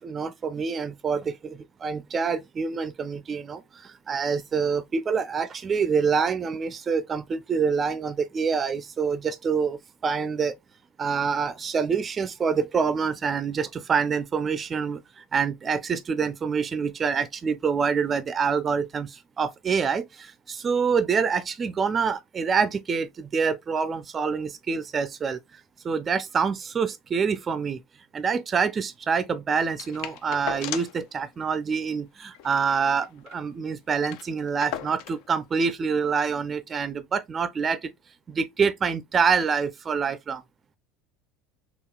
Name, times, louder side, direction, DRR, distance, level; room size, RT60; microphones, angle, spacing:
voice 1, 0.0-10.6 11.0-27.8 28.1-37.9 38.3-40.4, right 5 dB, 25° right, 0.4 m, -26 dB
sound 1, 29.8-31.1 31.4-31.5 31.8-31.9 32.3-33.4 33.7-33.8 34.0-35.3 36.1-36.2, left 11 dB, 65° left, 0.4 m, -37 dB
3.7 x 2.4 x 2.2 m
supercardioid pair, 125°, 0 cm